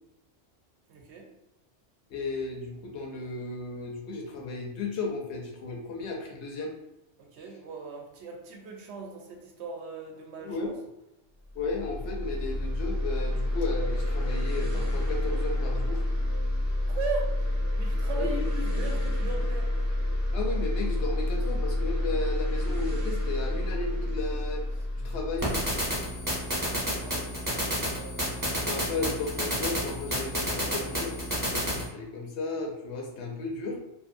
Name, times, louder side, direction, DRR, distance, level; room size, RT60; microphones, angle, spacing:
voice 1, 0.9-1.3 7.2-10.7 16.9-17.3 17.8-19.7 26.9-28.6, right 4 dB, 70° right, 1 dB, 0.8 m, -38 dB
voice 2, 2.1-6.7 10.4-10.7 11.5-16.0 18.2-18.5 20.3-24.6 25.0-25.5 28.7-33.8, left 3 dB, 75° left, 0 dB, 0.9 m, -34 dB
sound 1, 11.5-26.9, left 1 dB, 25° left, 0.5 m, -29 dB
sound 2, 25.4-31.8, equal, 20° right, 0.9 m, -30 dB
2.6 x 2.5 x 2.5 m, 0.91 s
omnidirectional pair, 1.2 m